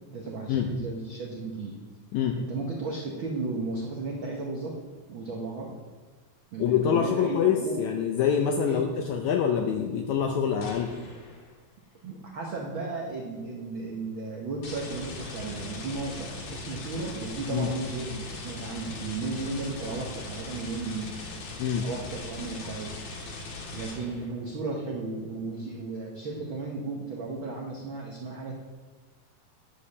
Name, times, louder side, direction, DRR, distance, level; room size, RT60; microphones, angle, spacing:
voice 1, 0.1-1.8 2.3-4.8 5.1-5.8 6.5-7.8 8.6-9.1 12.0-21.1 21.8-23.0 23.7-28.5, right 3 dB, 85° right, -1 dB, 1.1 m, -35 dB
voice 2, 6.6-10.9 17.5-17.7 21.6-21.8, left 8 dB, 80° left, 4 dB, 1.7 m, -25 dB
sound 1, 10.6-11.6 14.6-24.4, left 3 dB, 60° left, 2.4 m, -40 dB
10.0 x 5.2 x 6.9 m, 1.3 s
omnidirectional pair, 4.0 m